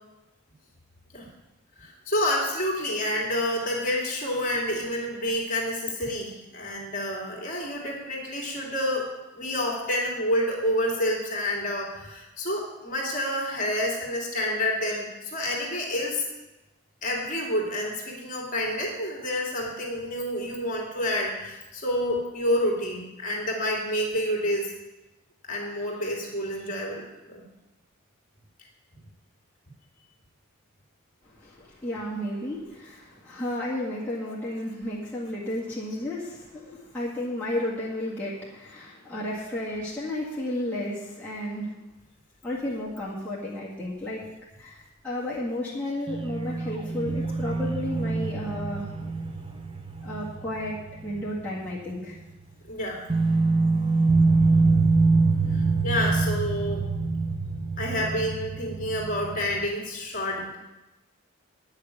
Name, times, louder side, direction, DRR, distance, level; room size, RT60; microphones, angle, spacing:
voice 1, 1.8-9.1 9.3-16.3 17.0-24.7 25.5-27.4 52.7-53.0 55.5-56.8 57.8-60.6, left 1 dB, 40° left, -1 dB, 2.6 m, -28 dB
voice 2, 31.2-41.7 42.4-44.2 44.6-48.9 50.0-50.8 51.0-52.1, left 1 dB, 10° left, -8 dB, 1.8 m, -32 dB
sound 1, 46.1-51.5 51.8-51.9 53.1-59.7, right 3 dB, 25° right, 0.6 m, -25 dB
9.7 x 6.6 x 8.3 m, 1.0 s
head